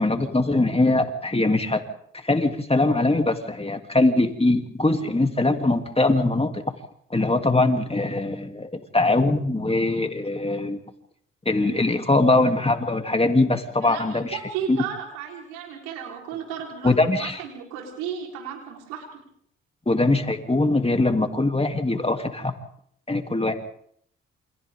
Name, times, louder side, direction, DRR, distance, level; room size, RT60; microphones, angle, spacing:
voice 1, 0.0-1.8 2.2-6.6 7.1-10.8 11.4-14.4 14.7-14.8 16.8-17.4 19.9-22.5 23.1-23.5, left 2 dB, 20° left, 5 dB, 3.0 m, -22 dB
voice 2, 13.8-19.2, right 8 dB, 85° right, 1 dB, 4.3 m, -34 dB
28.5 x 26.5 x 3.8 m, 0.67 s
hypercardioid pair, 45°, 31 cm